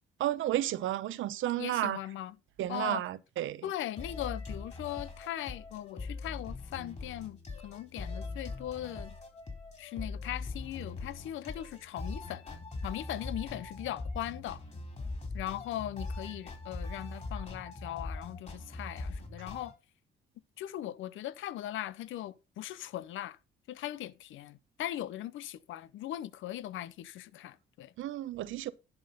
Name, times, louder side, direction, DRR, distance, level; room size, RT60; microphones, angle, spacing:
voice 1, 0.2-2.0 2.6-3.6 28.0-28.7, right 13 dB, 80° right, 0.8 m, -32 dB
voice 2, 1.6-2.4 2.7-3.1 3.6-9.1 9.8-14.6 15.3-19.7 20.6-23.4 23.7-27.9, left 13 dB, 75° left, 0.6 m, -39 dB
Fun music created with Soundtrack Pro, 4.0-19.7, left 3 dB, 35° left, 3.7 m, -41 dB
10.5 x 5.7 x 5.3 m
cardioid pair, 90°, 20 cm